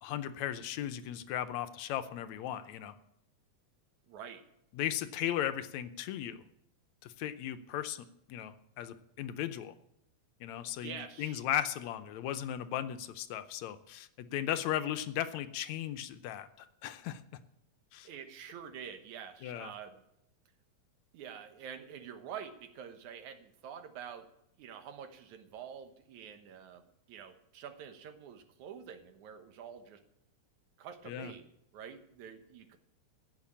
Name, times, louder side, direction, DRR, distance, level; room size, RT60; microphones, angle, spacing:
voice 1, 0.0-3.0 4.7-6.4 7.0-9.7 10.4-17.2 17.9-18.1 19.4-19.7 31.1-31.3, left 11 dB, 75° left, 11 dB, 2.0 m, -36 dB
voice 2, 4.1-4.5 10.8-11.4 18.0-20.0 21.1-24.3 24.6-30.0 30.8-31.5 31.7-32.8, right 8 dB, 85° right, 8 dB, 2.6 m, -47 dB
16.0 x 6.8 x 8.5 m, 0.78 s
omnidirectional pair, 3.3 m